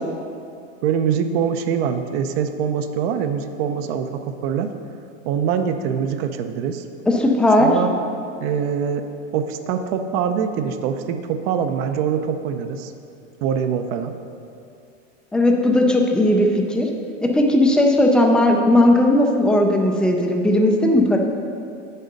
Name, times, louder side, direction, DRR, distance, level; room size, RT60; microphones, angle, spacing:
voice 1, 0.8-4.7 5.2-6.8 7.6-7.9 8.4-12.9 13.4-14.1, right 7 dB, 50° right, 7 dB, 0.6 m, -24 dB
voice 2, 7.1-7.7 15.3-16.9 17.2-21.2, left 1 dB, ahead, 1 dB, 0.3 m, -17 dB
7.9 x 6.6 x 5.2 m, 2.5 s
supercardioid pair, 140°, 39 cm